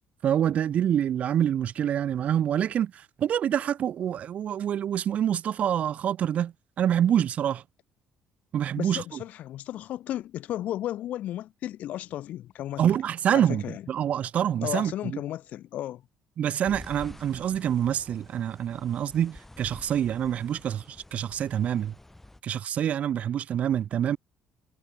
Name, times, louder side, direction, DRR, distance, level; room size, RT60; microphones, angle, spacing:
voice 1, 0.2-7.6 8.5-9.2 12.8-15.2 16.4-21.9 22.4-24.2, right 10 dB, 50° right, 0.6 m, -26 dB
voice 2, 8.8-12.8 13.3-13.8 14.6-16.0, left 13 dB, 60° left, 0.5 m, -34 dB
sound 1, 16.6-22.4, left 1 dB, 10° left, 4.1 m, -48 dB
hypercardioid pair, 55°, 3 cm